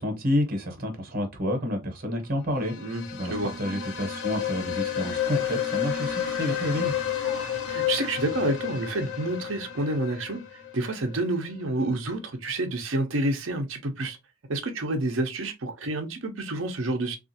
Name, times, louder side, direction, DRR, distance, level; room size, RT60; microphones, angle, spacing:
voice 1, 0.0-6.9, left 1 dB, 40° right, 1.0 m, -29 dB
sound 1, 2.5-11.3, left 10 dB, 55° left, 0.8 m, -31 dB
sound 2, 5.0-9.6, equal, ahead, 0.7 m, -46 dB
voice 2, 7.7-10.4 10.7-14.2 14.5-17.2, right 2 dB, 60° right, 0.7 m, -29 dB
3.5 x 2.4 x 2.7 m
head